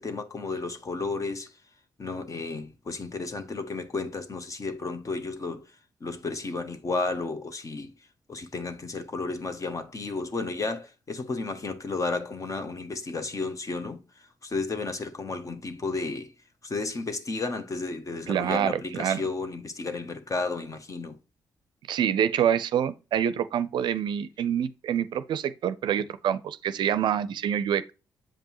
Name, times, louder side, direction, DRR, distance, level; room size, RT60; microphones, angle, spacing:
voice 1, 0.0-1.5 2.0-5.6 6.0-7.9 8.3-14.0 14.4-16.3 16.6-21.2, left 3 dB, 40° left, 1.1 m, -32 dB
voice 2, 18.3-19.2 21.9-27.9, right 9 dB, 65° right, 0.5 m, -26 dB
7.5 x 5.3 x 3.0 m
hypercardioid pair, 45°, 9 cm